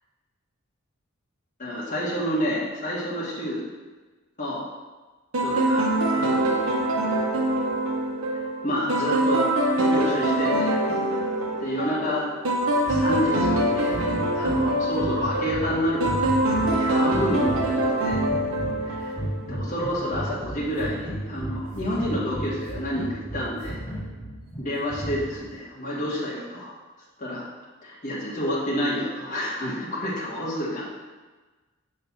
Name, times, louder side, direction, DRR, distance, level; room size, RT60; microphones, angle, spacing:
voice 1, 1.6-3.6 4.4-4.7 5.4-6.7 8.6-9.5 9.9-10.8 11.6-12.3 12.9-14.0 14.3-18.2 18.9-19.1 19.5-23.8 24.6-26.7 27.2-27.5 27.8-30.8, equal, 35° left, -7 dB, 1.3 m, -29 dB
sound 1, 5.3-19.6, right 1 dB, 80° right, 0.9 m, -24 dB
sound 2, 12.8-25.5, right 1 dB, 20° left, 1.5 m, -34 dB
6.0 x 3.2 x 5.5 m, 1.3 s
head